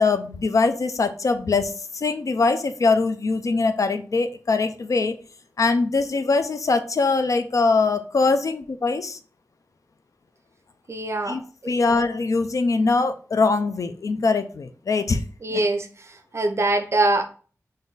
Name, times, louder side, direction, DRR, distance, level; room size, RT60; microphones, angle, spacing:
voice 1, 0.0-5.2 5.6-9.2 11.3-15.2 15.5-15.6, left 3 dB, 65° left, 9 dB, 0.4 m, -22 dB
voice 2, 10.9-11.7 15.4-15.9 16.3-17.2, right 2 dB, 50° right, 6 dB, 0.5 m, -23 dB
3.8 x 2.6 x 3.8 m, 0.39 s
wide cardioid pair, 90°, 6 cm